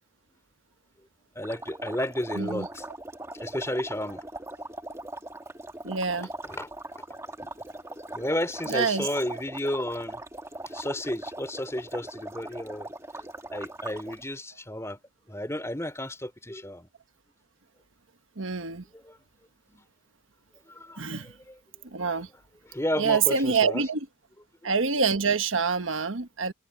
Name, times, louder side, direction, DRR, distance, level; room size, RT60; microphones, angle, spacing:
voice 1, 1.3-2.8 3.4-4.2 4.6-4.7 6.4-7.0 7.4-7.5 7.9-10.2 10.7-12.9 13.2-15.0 15.3-16.9 18.9-19.2 19.7-19.8 20.7-21.6 21.9-22.2 22.6-23.8, left 1 dB, 15° left, 4.4 m, -33 dB
sound 1, 1.4-14.2, right 2 dB, 15° right, 1.5 m, -40 dB
voice 2, 5.8-6.3 8.7-9.1 18.4-18.8 21.0-21.3 21.9-22.3 23.0-24.0 24.6-26.5, right 5 dB, 85° right, 1.3 m, -26 dB
head